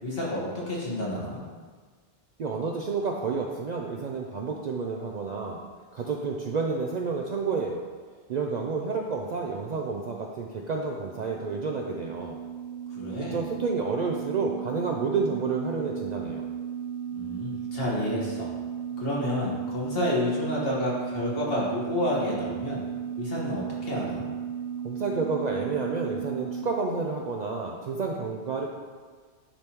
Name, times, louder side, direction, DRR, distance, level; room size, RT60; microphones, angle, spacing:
voice 1, 0.0-1.4 13.0-13.4 17.1-18.5 19.0-22.8 23.2-24.3, left 1 dB, 60° left, -5 dB, 1.6 m, -30 dB
voice 2, 2.4-5.6 5.9-7.8 8.3-12.4 13.2-16.5 24.8-28.7, right 4 dB, 55° right, 0 dB, 0.5 m, -30 dB
sound 1, 10.5-26.6, right 8 dB, 80° right, 1.0 m, -35 dB
9.7 x 3.5 x 2.9 m, 1.5 s
omnidirectional pair, 1.1 m